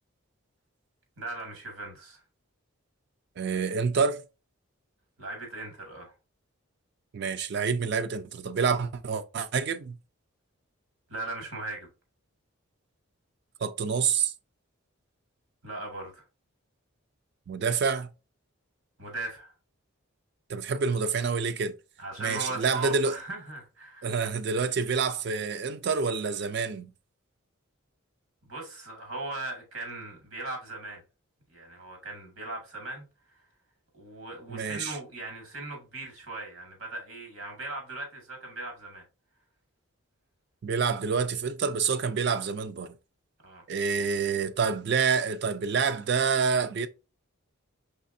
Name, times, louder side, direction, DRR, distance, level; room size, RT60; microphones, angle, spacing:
voice 1, 1.2-2.2 5.2-6.1 11.1-11.9 15.6-16.2 19.0-19.5 22.0-24.2 28.4-31.0 31.5-33.4 33.9-39.0 43.4-43.6, right 2 dB, 85° right, 2.0 m, -39 dB
voice 2, 3.4-4.2 7.1-10.0 13.6-14.3 17.5-18.1 20.5-21.8 22.2-23.2 24.0-26.9 34.5-35.0 40.6-42.9 43.7-46.9, right 5 dB, 50° right, 0.3 m, -27 dB
4.8 x 3.3 x 2.6 m
head